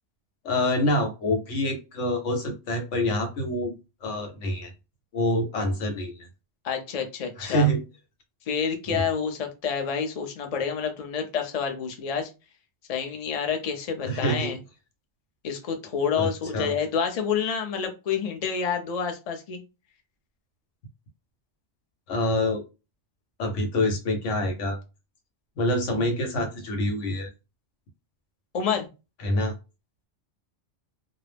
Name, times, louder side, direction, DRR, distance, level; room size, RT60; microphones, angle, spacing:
voice 1, 0.4-4.7 5.1-6.3 7.4-7.8 8.9-9.0 14.0-14.5 16.2-16.7 22.1-22.6 23.4-24.8 25.6-27.3 29.2-29.5, left 1 dB, 85° left, 1.1 m, -26 dB
voice 2, 6.6-7.7 8.5-12.3 12.9-14.6 15.4-19.6 28.5-28.9, left 6 dB, 45° left, 0.5 m, -28 dB
2.3 x 2.0 x 3.2 m
omnidirectional pair, 1.2 m